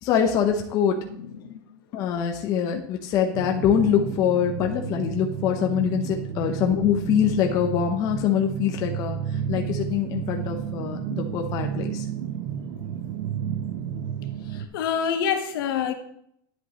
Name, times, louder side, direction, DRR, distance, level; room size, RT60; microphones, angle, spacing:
voice 1, 0.0-1.0 1.9-9.2 9.5-12.1, left 8 dB, 30° left, 3 dB, 0.8 m, -24 dB
voice 2, 1.1-1.6 6.4-6.5 14.4-15.9, left 8 dB, 70° left, 6 dB, 1.3 m, -27 dB
sound 1, 3.3-14.7, right 8 dB, 55° right, 0.7 m, -31 dB
10.0 x 7.9 x 3.0 m, 0.68 s
supercardioid pair, 180°, 12 cm